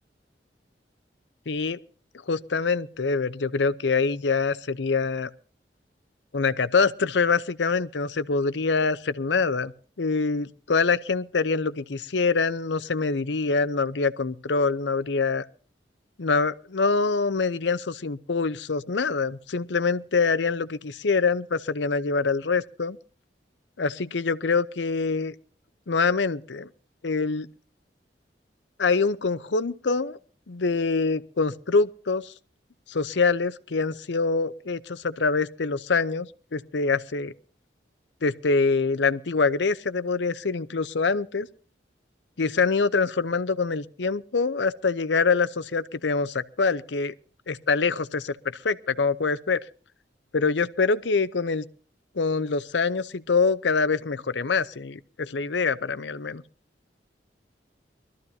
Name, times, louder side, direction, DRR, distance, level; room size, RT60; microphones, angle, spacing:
voice 1, 1.5-1.8 2.3-5.3 6.3-9.7 10.0-15.4 16.2-23.0 23.8-25.3 25.9-26.7 27.0-27.5 28.8-30.2 30.5-32.3 32.9-37.3 38.2-41.5 42.4-47.1 47.5-49.6 50.3-51.6 52.2-56.4, left 4 dB, 85° left, 0.7 m, -25 dB
23.0 x 13.5 x 2.7 m
head